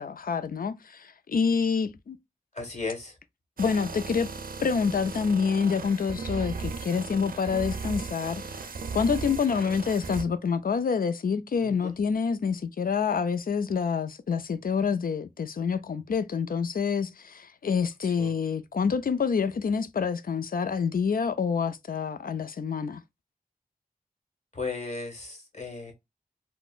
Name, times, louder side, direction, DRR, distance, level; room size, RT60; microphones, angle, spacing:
voice 1, 0.0-2.2 3.6-4.3 4.6-8.7 8.9-23.0, left 6 dB, 75° left, 0.4 m, -27 dB
voice 2, 2.5-3.2 11.6-12.0 18.0-18.4 24.5-25.9, left 3 dB, 50° left, 1.4 m, -36 dB
sound 1, 3.6-10.2, right 4 dB, 75° right, 0.5 m, -36 dB
3.8 x 2.0 x 2.3 m
wide cardioid pair, 60°, 15 cm